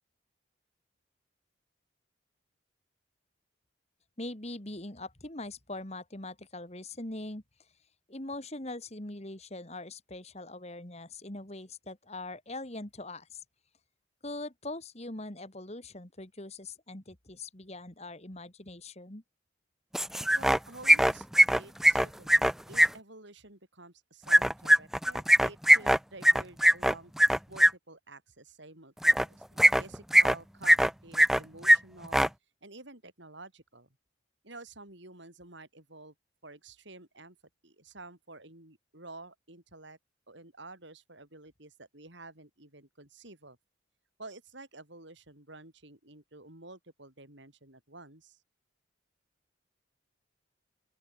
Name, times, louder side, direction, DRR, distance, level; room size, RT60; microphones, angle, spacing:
voice 1, 4.2-7.4 8.1-13.4 14.2-19.2, left 2 dB, 30° left, 2.2 m, -42 dB
sound 1, 19.9-20.6 20.8-22.9 24.3-27.7 29.0-29.2 29.6-30.3 30.6-31.4 31.6-31.8 32.0-32.3, equal, ahead, 0.4 m, -21 dB
voice 2, 20.3-27.1 27.5-32.2 32.6-33.9 34.4-36.1 36.4-37.4 37.6-40.0 40.3-43.6 44.2-48.4, right 2 dB, 65° right, 5.0 m, -50 dB
open air
head